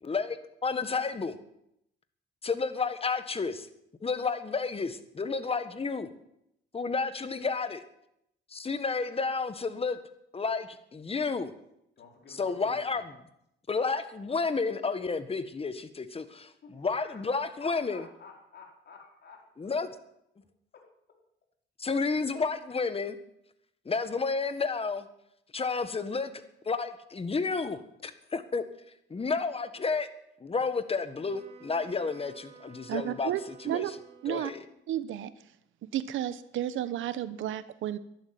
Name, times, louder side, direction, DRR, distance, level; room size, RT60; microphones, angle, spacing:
voice 1, 0.0-1.3 2.4-3.7 4.0-6.1 6.7-7.8 8.5-10.0 10.3-11.5 12.4-13.1 13.7-18.0 19.6-19.9 21.8-23.2 23.8-25.1 25.5-28.6 29.1-30.1 30.4-33.3 33.6-33.8 34.3-34.6, left 4 dB, 30° left, 11 dB, 1.6 m, -31 dB
voice 2, 12.0-13.0 16.6-19.7 20.7-20.8 22.2-22.3, left 5 dB, 55° left, 0 dB, 4.5 m, -51 dB
Wind instrument woodwind instrument, 31.2-34.8, right 5 dB, 30° right, 3.9 m, -54 dB
voice 3, 32.9-33.9 34.2-34.5 34.9-35.3 35.9-38.0, right 11 dB, 80° right, 14 dB, 1.1 m, -32 dB
11.5 x 11.5 x 9.5 m, 0.79 s
cardioid pair, 90°, 20 cm